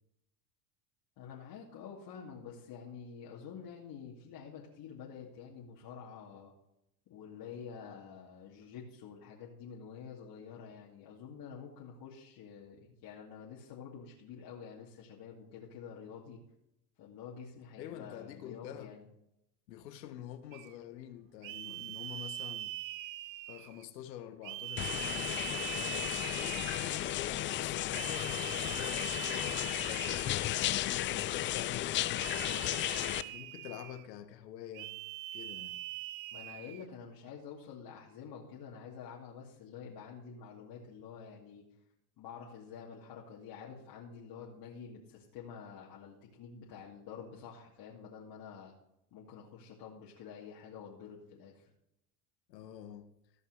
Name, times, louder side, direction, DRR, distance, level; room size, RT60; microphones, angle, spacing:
voice 1, 1.2-6.5 7.1-16.4 17.0-19.0 36.3-41.6 42.2-48.7 49.1-51.7, left 7 dB, 50° left, 2.6 m, -48 dB
voice 2, 17.8-19.0 19.7-22.7 23.5-25.7 26.3-30.3 31.0-34.9 35.3-35.8 52.5-53.1, left 10 dB, 85° left, 1.4 m, -47 dB
sound 1, 20.5-20.7 21.4-23.8 24.4-27.2 27.9-30.7 32.2-34.1 34.7-36.8, right 14 dB, 45° right, 0.7 m, -42 dB
sound 2, 24.8-33.2, left 14 dB, 25° left, 0.3 m, -34 dB
15.5 x 5.4 x 6.4 m
supercardioid pair, 100°, 48 cm